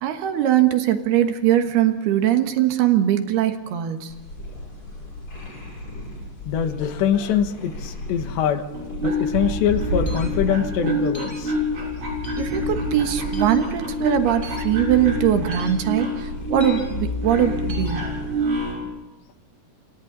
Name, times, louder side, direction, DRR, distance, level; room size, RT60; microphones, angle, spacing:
voice 1, 0.0-4.1 12.4-18.1, right 11 dB, 70° right, 7 dB, 3.2 m, -21 dB
sound 1, 4.1-18.7, left 1 dB, 30° left, 6.7 m, -35 dB
voice 2, 6.5-8.6 9.0-11.5, left 9 dB, 75° left, 7 dB, 3.6 m, -23 dB
sound 2, 8.7-18.9, equal, 40° right, 7.8 m, -27 dB
sound 3, 10.1-10.3 11.1-11.4 12.2-12.5 13.3-13.6 14.4-14.6 15.5-15.7 16.6-16.8 17.7-17.9, equal, 5° right, 6.6 m, -39 dB
29.0 x 26.5 x 4.0 m, 1.1 s
omnidirectional pair, 5.1 m